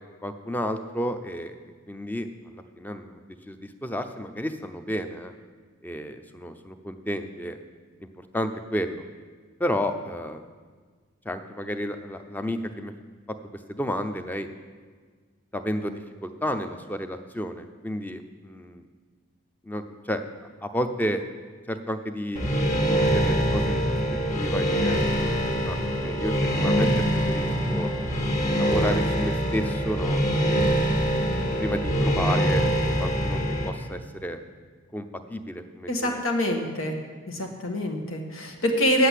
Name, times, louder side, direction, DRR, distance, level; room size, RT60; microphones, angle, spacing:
voice 1, 0.2-1.5 1.9-3.1 3.5-5.3 5.8-7.6 8.0-8.1 8.3-9.0 9.6-10.4 11.3-12.9 13.7-14.5 15.5-18.8 19.6-20.2 20.6-21.2 21.7-23.8 24.3-25.0 25.7-26.9 27.3-27.9 28.6-30.7 31.3-32.7 33.0-33.4 33.6-34.4 34.9-36.2, equal, 10° left, 8 dB, 0.6 m, -31 dB
sound 1, 22.3-33.7, equal, 35° left, 1.5 m, -24 dB
voice 2, 35.9-37.0 37.3-39.1, equal, 85° left, 3 dB, 1.6 m, -25 dB
8.9 x 7.8 x 8.3 m, 1.5 s
head